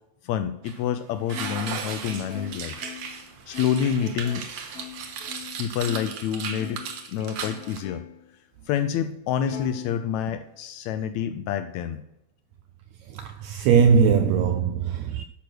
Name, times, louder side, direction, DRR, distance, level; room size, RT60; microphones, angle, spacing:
voice 1, 0.2-2.7 3.5-4.5 5.6-8.0 8.7-12.0, left 8 dB, 80° left, 1.7 m, -28 dB
sound 1, 0.7-0.8 1.3-7.8, right 7 dB, 65° right, 2.0 m, -36 dB
Plucked string instrument, 1.3-6.2 6.6-8.3 8.7-8.8 9.5-10.6, left 11 dB, 60° left, 1.9 m, -41 dB
voice 2, 13.1-15.2, right 6 dB, 85° right, 1.6 m, -20 dB
11.5 x 6.2 x 6.2 m
omnidirectional pair, 3.6 m